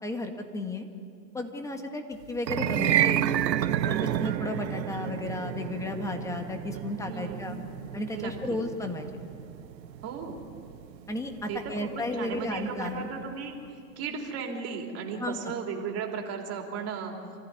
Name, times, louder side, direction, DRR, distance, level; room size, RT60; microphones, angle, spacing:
voice 1, 0.0-0.9 1.3-3.3 3.8-7.6 7.9-9.1 11.1-13.1 15.2-15.5, left 2 dB, 5° left, 5 dB, 1.7 m, -34 dB
sound 1, 2.4-12.7, right 11 dB, 80° right, 1.0 m, -30 dB
voice 2, 3.9-4.4 7.0-7.6 8.1-8.6 10.0-10.4 11.5-13.5 14.0-17.1, right 6 dB, 30° right, 2 dB, 3.4 m, -36 dB
26.0 x 15.5 x 9.5 m, 2.4 s
hypercardioid pair, 130°, 50 cm